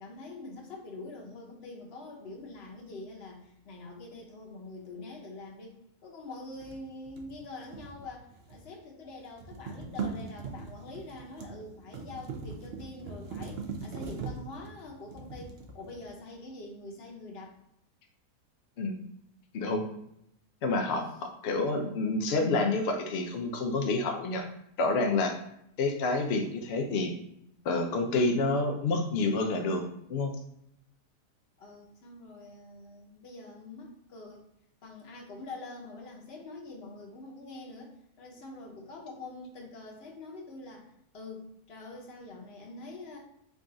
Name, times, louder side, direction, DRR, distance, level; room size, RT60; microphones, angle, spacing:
voice 1, 0.0-17.6 21.0-21.2 31.6-34.4 34.8-40.9 41.1-43.2, left 2 dB, 55° left, -1 dB, 0.7 m, -45 dB
sound 1, 6.5-8.8 9.0-16.3, right 4 dB, 90° right, 0.5 m, -41 dB
voice 2, 19.5-19.9 20.6-24.5 24.8-25.4 25.8-27.1 27.7-29.8 30.1-30.3, left 3 dB, 90° left, 3 dB, 0.5 m, -28 dB
3.6 x 2.4 x 3.8 m, 0.75 s
omnidirectional pair, 1.7 m